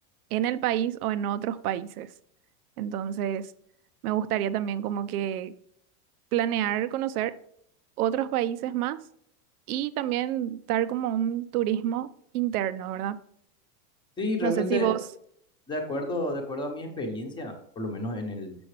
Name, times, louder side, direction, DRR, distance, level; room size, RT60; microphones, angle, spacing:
voice 1, 0.3-2.1 2.8-3.5 4.0-5.5 6.3-7.3 8.0-9.0 9.7-12.1 12.3-13.2 14.4-15.0, right 11 dB, 90° right, 0.7 m, -28 dB
voice 2, 14.2-14.9 15.7-18.6, left 1 dB, 10° left, 0.9 m, -31 dB
7.0 x 6.9 x 3.3 m
supercardioid pair, 160°, 43 cm